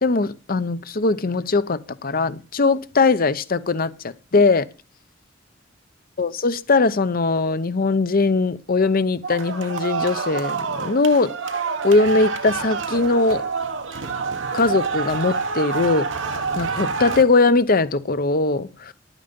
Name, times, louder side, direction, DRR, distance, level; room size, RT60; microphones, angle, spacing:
voice 1, 0.0-4.7 6.2-11.3 11.8-13.4 14.5-16.1 16.6-18.9, left 3 dB, 50° left, 0.8 m, -20 dB
sound 1, 9.2-17.2, right 4 dB, 80° right, 1.3 m, -27 dB
11.0 x 9.1 x 5.3 m
head